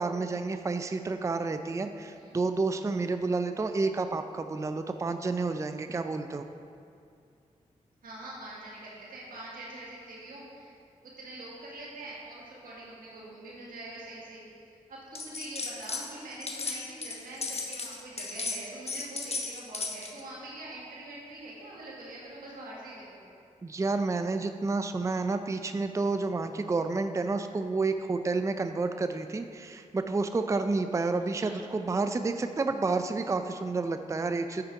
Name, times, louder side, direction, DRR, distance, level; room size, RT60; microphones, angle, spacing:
voice 1, 0.0-6.5 23.6-34.6, right 3 dB, 20° right, 8 dB, 0.4 m, -30 dB
voice 2, 8.0-10.7 11.0-14.4 14.9-23.2 31.3-31.5, right 2 dB, 85° right, -5 dB, 1.5 m, -44 dB
sound 1, 15.1-16.1 16.3-20.2, left 4 dB, 45° left, 0.9 m, -35 dB
8.1 x 5.0 x 4.6 m, 2.4 s
cardioid pair, 50°, 14 cm